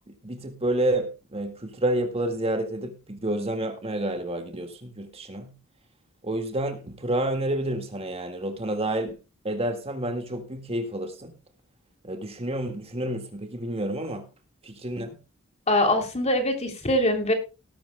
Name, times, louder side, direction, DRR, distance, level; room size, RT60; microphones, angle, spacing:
voice 1, 0.1-5.5 6.2-9.2 9.4-11.3 12.0-14.3 14.6-15.2, right 1 dB, 30° right, 6 dB, 1.8 m, -29 dB
voice 2, 15.7-17.3, left 1 dB, 30° left, 5 dB, 3.0 m, -23 dB
19.0 x 12.0 x 2.2 m, 0.29 s
head